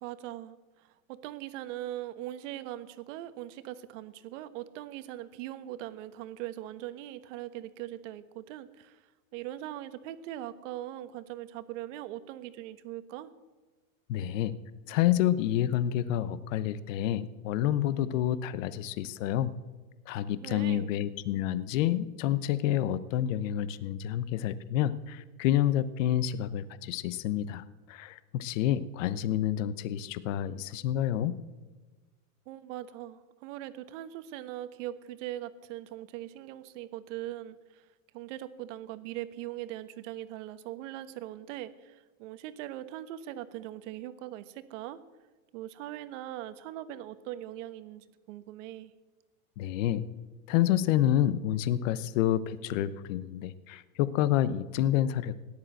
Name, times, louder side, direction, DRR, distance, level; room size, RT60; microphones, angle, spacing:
voice 1, 0.0-9.0 9.3-13.3 20.4-20.9 32.5-37.8 38.1-45.0 45.5-48.9, right 13 dB, 55° right, 12 dB, 1.3 m, -41 dB
voice 2, 14.1-14.6 14.9-19.5 20.1-27.6 27.9-31.4 49.6-50.0 50.5-55.3, left 12 dB, 60° left, 15 dB, 1.0 m, -28 dB
17.5 x 10.5 x 7.8 m, 1.2 s
supercardioid pair, 130°, 43 cm